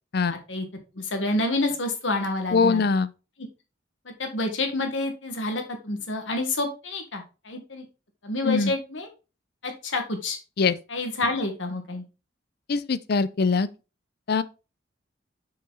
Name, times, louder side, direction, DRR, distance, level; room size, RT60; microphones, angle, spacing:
voice 1, 0.3-0.7 0.9-2.8 4.2-7.8 8.2-9.1 9.6-10.4 10.9-12.0, left 2 dB, 85° left, 1.6 m, -28 dB
voice 2, 2.5-3.1 8.4-8.7 10.6-10.8 12.7-13.7 14.3-14.4, left 4 dB, 60° left, 0.5 m, -22 dB
7.2 x 4.9 x 3.9 m
head